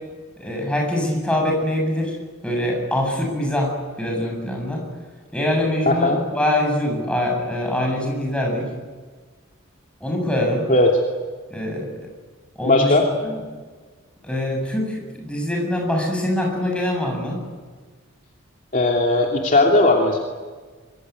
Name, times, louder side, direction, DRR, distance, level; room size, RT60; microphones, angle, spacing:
voice 1, 0.4-2.2 2.4-4.8 5.3-8.6 10.0-10.7 11.5-11.9 12.6-13.4 14.2-17.4, left 1 dB, 5° left, 0 dB, 7.8 m, -24 dB
voice 2, 5.9-6.2 10.7-10.9 12.6-13.0 18.7-20.2, left 2 dB, 40° left, 0 dB, 2.9 m, -17 dB
25.5 x 22.5 x 9.6 m, 1.4 s
head